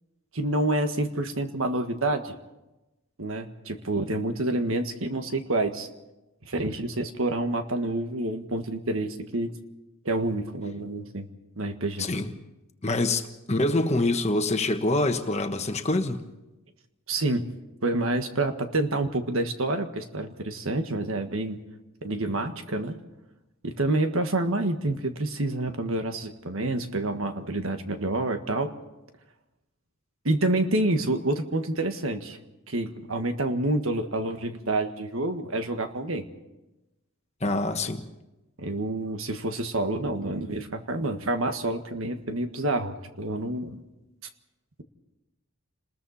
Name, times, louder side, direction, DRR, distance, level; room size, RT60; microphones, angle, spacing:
voice 1, 0.3-2.3 3.2-5.9 6.4-9.5 10.0-11.3 11.6-12.1 17.1-17.5 17.8-21.6 22.0-23.0 23.6-28.7 30.2-32.4 32.7-36.2 38.6-43.8, right 2 dB, 65° right, 7 dB, 1.6 m, -28 dB
voice 2, 12.0-12.3 12.8-16.2 37.4-38.0, left 2 dB, 30° left, 6 dB, 1.3 m, -25 dB
30.0 x 20.5 x 4.2 m, 1.0 s
head